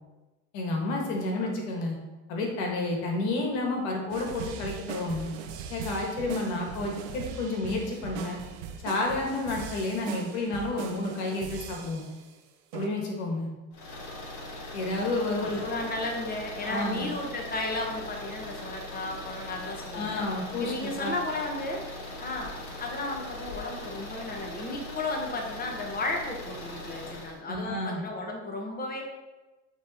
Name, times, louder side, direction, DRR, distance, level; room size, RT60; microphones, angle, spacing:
voice 1, 0.5-2.0 2.3-5.3 5.7-8.4 8.8-12.0 12.7-13.5 14.7-15.7 16.6-17.1 19.9-21.2 27.5-28.0, left 2 dB, 90° left, 1 dB, 1.7 m, -30 dB
sound 1, 4.1-12.3 12.7-12.9, right 6 dB, 90° right, 1.0 m, -40 dB
sound 2, 13.7-27.4, left 1 dB, 55° left, 1.8 m, -40 dB
voice 2, 15.4-20.2 20.6-21.8 22.2-22.5 22.8-29.0, left 2 dB, 25° left, 1 dB, 1.5 m, -34 dB
9.9 x 3.5 x 4.2 m, 1.1 s
supercardioid pair, 100°, 34 cm